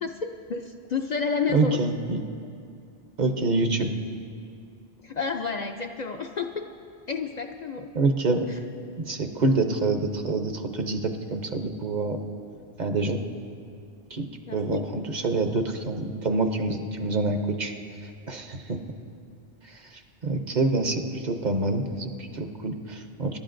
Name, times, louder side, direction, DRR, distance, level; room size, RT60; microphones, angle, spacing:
voice 1, 0.0-1.8 5.0-6.7 7.1-7.9 14.5-14.9, left 5 dB, 50° left, 4 dB, 0.6 m, -30 dB
voice 2, 1.5-2.2 3.2-3.9 7.9-8.5 9.0-12.2 12.8-13.2 14.1-17.7 18.0-18.8 19.6-23.4, right 3 dB, 50° right, 5 dB, 0.8 m, -26 dB
26.5 x 11.5 x 2.5 m, 2.5 s
omnidirectional pair, 1.1 m